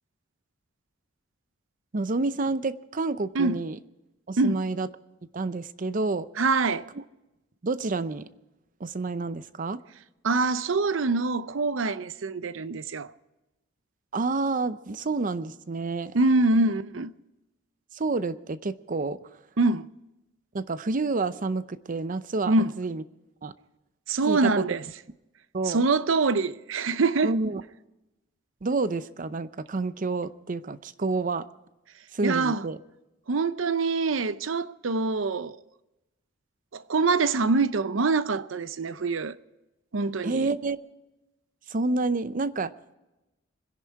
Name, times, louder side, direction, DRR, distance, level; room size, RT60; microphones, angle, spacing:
voice 1, 1.9-3.8 4.3-4.9 5.3-6.3 7.6-8.2 8.8-9.8 14.1-16.1 16.6-16.7 17.9-19.2 20.5-23.0 23.4-23.5 24.3-24.6 25.5-25.8 27.2-27.6 28.6-31.4 32.1-32.8 40.2-40.8 41.7-42.7, right 3 dB, 45° right, 0.6 m, -29 dB
voice 2, 6.4-6.9 10.2-13.1 16.1-17.1 19.6-19.9 22.5-22.7 24.1-24.8 25.7-27.4 32.2-32.7 33.3-35.6 36.7-39.3 39.9-40.5, right 3 dB, 80° right, 0.6 m, -25 dB
25.5 x 11.0 x 4.7 m
head